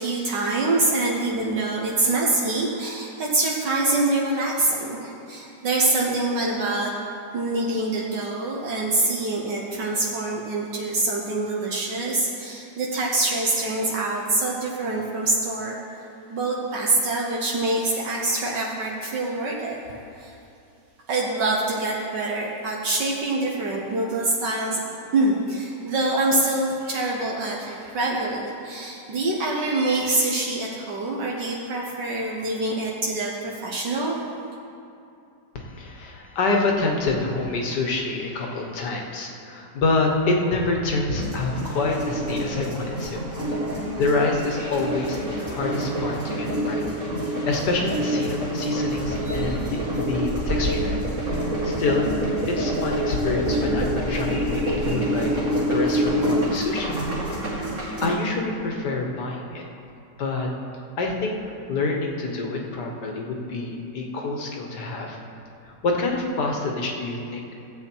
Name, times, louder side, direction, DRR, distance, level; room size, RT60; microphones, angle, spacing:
voice 1, 0.0-6.9 7.3-15.8 16.3-20.4 21.1-24.8 25.1-34.2, right 2 dB, 70° right, -3 dB, 1.7 m, -25 dB
voice 2, 35.6-43.2 43.5-46.8 47.2-51.0 51.3-52.1 52.5-55.3 55.7-57.0 57.5-57.7 58.0-59.6 60.2-60.5 61.0-61.3 61.7-65.2 65.6-67.4, left 3 dB, 65° left, 1 dB, 1.8 m, -27 dB
sound 1, 41.1-58.1, equal, 40° right, 2.4 m, -26 dB
15.0 x 8.1 x 4.5 m, 2.6 s
omnidirectional pair, 1.9 m